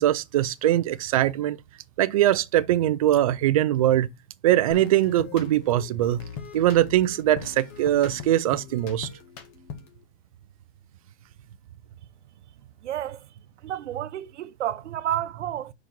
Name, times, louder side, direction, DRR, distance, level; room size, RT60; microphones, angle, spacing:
voice 1, 0.0-1.6 2.0-4.1 4.4-6.2 6.5-9.1, right 13 dB, 30° right, 0.4 m, -22 dB
sound 1, 4.7-10.0, left 6 dB, 30° left, 1.7 m, -41 dB
voice 2, 12.8-13.2 13.6-15.7, right 11 dB, 70° right, 0.9 m, -31 dB
5.2 x 4.9 x 5.9 m
hypercardioid pair, 160°, 36 cm